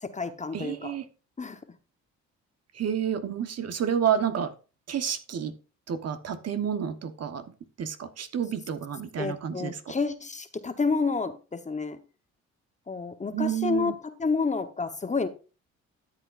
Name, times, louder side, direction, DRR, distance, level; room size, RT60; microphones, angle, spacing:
voice 1, 0.0-0.9 1.4-1.6 9.2-12.0 12.9-15.3, left 4 dB, 25° left, 9 dB, 1.1 m, -29 dB
voice 2, 0.5-1.1 2.7-4.5 4.9-5.5 5.9-7.4 7.8-9.9 13.3-14.0, right 8 dB, 55° right, 10 dB, 1.2 m, -30 dB
13.0 x 8.0 x 2.5 m, 0.33 s
cardioid pair, 90°, 30 cm